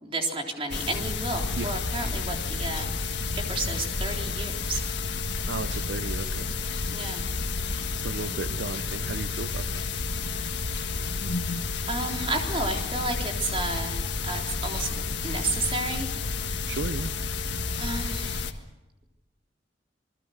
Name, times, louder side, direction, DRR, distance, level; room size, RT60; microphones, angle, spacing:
voice 1, 0.0-2.9 3.3-4.8 6.9-7.3 11.9-14.9 15.2-16.1 17.8-18.5, right 2 dB, 30° right, 1 dB, 3.7 m, -32 dB
sound 1, 0.7-18.5, left 4 dB, 80° left, 1.6 m, -30 dB
voice 2, 5.5-6.5 8.0-9.8 16.7-17.1, right 3 dB, 80° right, 11 dB, 0.7 m, -35 dB
28.5 x 21.0 x 6.6 m, 1.1 s
head